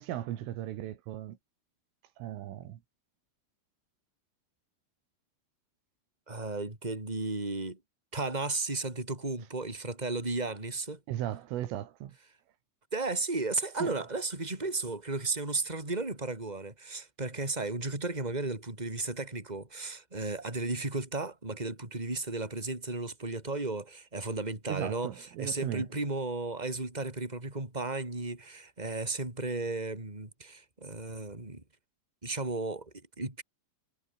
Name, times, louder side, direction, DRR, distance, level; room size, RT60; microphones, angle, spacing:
voice 1, 0.0-1.4 2.2-2.8 11.1-12.2 13.8-13.9 24.7-25.9, right 12 dB, 80° right, 4.4 m, -37 dB
voice 2, 6.3-7.8 8.1-11.0 12.9-31.6 32.2-33.4, right 3 dB, 10° right, 4.7 m, -34 dB
omnidirectional pair, 5.8 m